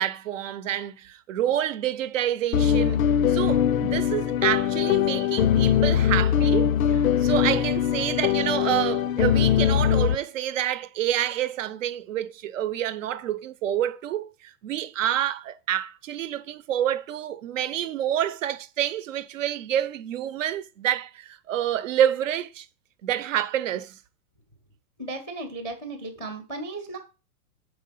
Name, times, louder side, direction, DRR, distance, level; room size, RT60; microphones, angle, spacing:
voice 1, 0.0-3.0 3.3-22.7 23.0-24.0, right 11 dB, 55° right, 0.8 m, -28 dB
sound 1, 2.5-10.2, left 9 dB, 65° left, 0.7 m, -22 dB
voice 2, 25.0-27.0, right 2 dB, 5° right, 0.3 m, -35 dB
6.6 x 4.7 x 5.6 m
hypercardioid pair, 155°, 45 cm